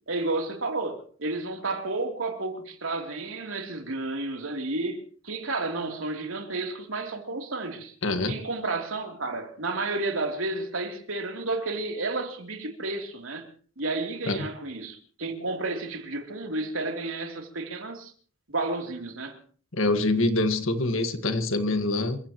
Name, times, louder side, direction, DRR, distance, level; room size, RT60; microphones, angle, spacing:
voice 1, 0.1-7.9 8.2-13.5 13.8-18.1 18.5-19.4, right 2 dB, 85° right, 3.3 m, -31 dB
voice 2, 8.0-8.3 14.3-14.5 19.7-22.2, left 2 dB, 80° left, 1.7 m, -25 dB
27.5 x 16.0 x 3.1 m
head